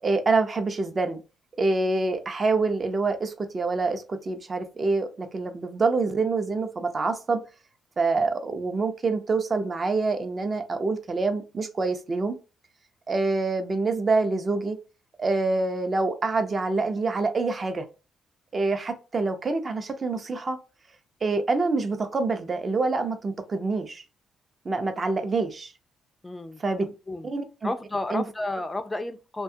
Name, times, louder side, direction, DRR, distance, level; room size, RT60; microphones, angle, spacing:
voice 1, 0.0-1.2 1.6-7.4 8.0-12.4 13.1-14.8 15.2-17.9 18.5-20.6 21.2-24.0 24.6-25.7 26.6-26.9 27.2-27.7 28.1-28.2, right 3 dB, 35° right, 0.6 m, -26 dB
voice 2, 26.2-27.3 27.6-29.4, left 2 dB, 15° left, 0.4 m, -32 dB
2.7 x 2.2 x 2.6 m
cardioid pair, 90°, 0 cm